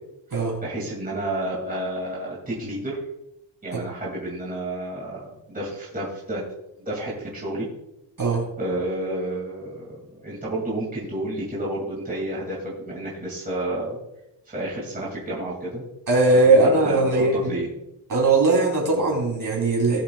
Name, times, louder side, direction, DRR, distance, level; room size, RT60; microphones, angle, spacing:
voice 1, 0.6-3.0 3.6-6.5 6.9-7.7 8.6-14.0 14.5-15.8 16.4-17.7, right 1 dB, 20° right, -6 dB, 2.4 m, -30 dB
voice 2, 16.1-17.5 18.1-20.0, right 2 dB, 40° right, -2 dB, 3.4 m, -19 dB
18.5 x 7.7 x 2.4 m, 0.89 s
wide cardioid pair, 180°, 47 cm